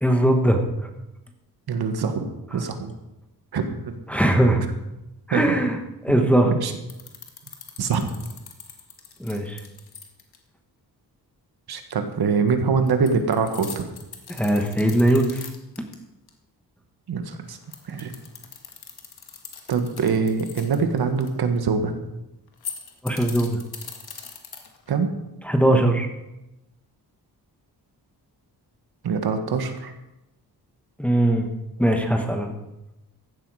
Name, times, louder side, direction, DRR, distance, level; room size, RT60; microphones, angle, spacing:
voice 1, 0.0-0.6 4.1-4.6 5.3-5.8 6.0-6.5 9.2-9.6 14.3-15.5 23.0-23.6 25.4-26.1 31.0-31.5 31.8-32.5, right 1 dB, 5° left, 3 dB, 1.2 m, -20 dB
voice 2, 1.7-2.3 2.5-2.9 3.5-4.0 5.3-5.5 6.1-6.2 6.5-6.7 7.8-8.1 11.7-13.9 17.1-17.6 17.9-18.1 19.7-21.9 24.9-25.1 29.0-29.9, right 5 dB, 70° right, 7 dB, 1.6 m, -24 dB
sound 1, 6.9-10.4 12.9-15.9 16.3-16.4 17.5-21.3 22.5-24.9, left 7 dB, 70° left, 1.9 m, -40 dB
15.0 x 11.5 x 4.8 m, 0.95 s
wide cardioid pair, 165°, 39 cm